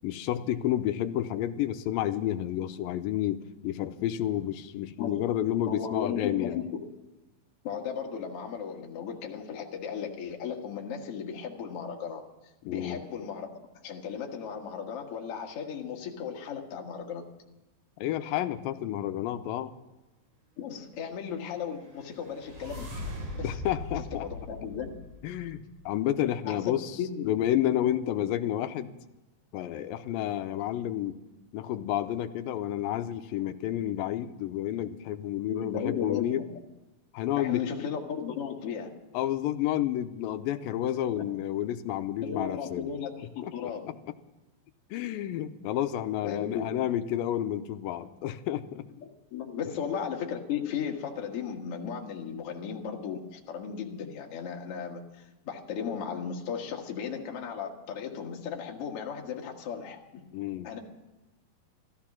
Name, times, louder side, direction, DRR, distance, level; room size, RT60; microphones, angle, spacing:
voice 1, 0.0-6.6 12.7-13.0 18.0-19.7 23.4-24.3 25.2-26.9 27.2-28.9 29.5-31.2 31.5-36.4 37.1-37.6 39.1-42.9 43.4-43.7 44.9-48.8 60.3-60.7, left 12 dB, 80° left, 9 dB, 2.4 m, -30 dB
voice 2, 5.7-6.7 7.6-12.2 12.6-13.5 13.8-17.2 20.6-22.9 23.4-23.5 24.1-24.9 26.4-27.3 35.5-36.6 37.4-38.9 41.2-41.3 42.2-43.9 46.2-46.7 49.0-60.2 60.6-60.8, left 7 dB, 50° left, 0 dB, 2.1 m, -35 dB
sound 1, 21.6-25.8, left 1 dB, 60° right, 5.5 m, -40 dB
14.5 x 13.5 x 6.0 m, 1.1 s
omnidirectional pair, 4.1 m